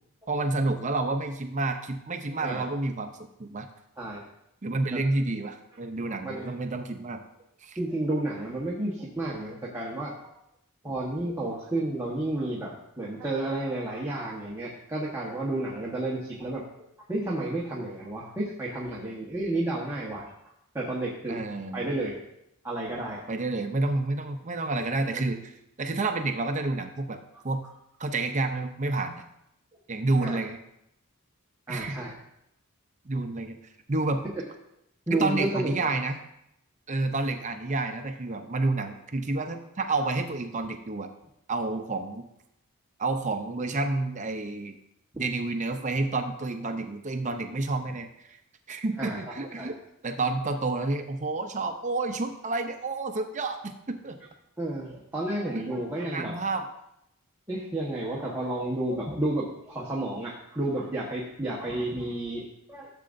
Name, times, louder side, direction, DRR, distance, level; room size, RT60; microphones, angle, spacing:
voice 1, 0.3-3.1 3.4-3.7 4.6-7.2 7.6-7.8 21.3-21.8 23.3-25.5 25.8-27.2 27.4-27.6 28.0-29.2 29.9-30.6 31.7-32.0 33.1-33.6 33.9-34.2 35.1-36.2 36.9-41.1 41.5-42.3 43.0-44.8 45.2-48.4 48.7-49.8 50.0-54.2 55.6-56.6, right 2 dB, 35° right, 6 dB, 0.6 m, -29 dB
voice 2, 6.1-6.5 7.8-10.1 10.8-16.6 17.1-20.3 20.7-21.4 21.7-22.2 22.6-23.2 25.0-25.2 30.2-30.4 31.7-32.1 35.1-35.9 40.0-40.1 49.0-49.7 54.6-56.4 57.5-62.9, right 1 dB, 15° right, -5 dB, 1.2 m, -31 dB
14.0 x 7.5 x 2.6 m, 0.80 s
head